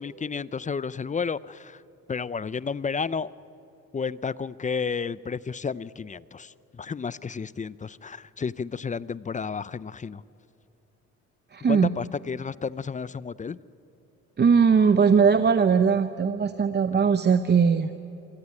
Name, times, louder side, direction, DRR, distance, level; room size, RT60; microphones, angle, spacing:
voice 1, 0.0-1.8 2.1-3.3 3.9-10.2 11.7-13.6, left 5 dB, 25° left, 19 dB, 0.5 m, -32 dB
voice 2, 11.5-11.9 14.4-17.9, right 6 dB, 35° right, 10 dB, 0.9 m, -20 dB
26.0 x 17.0 x 9.8 m, 3.0 s
cardioid pair, 90°, 30 cm